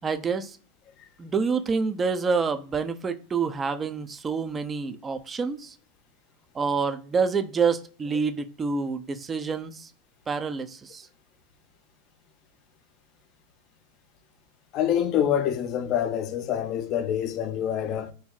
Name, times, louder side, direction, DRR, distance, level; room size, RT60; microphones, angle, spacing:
voice 1, 0.0-0.6 1.2-5.7 6.5-9.9 10.3-11.1, right 5 dB, 20° right, 0.5 m, -27 dB
voice 2, 14.7-18.1, left 9 dB, 45° left, 0.5 m, -26 dB
2.6 x 2.1 x 3.9 m
hypercardioid pair, 105°, 0 cm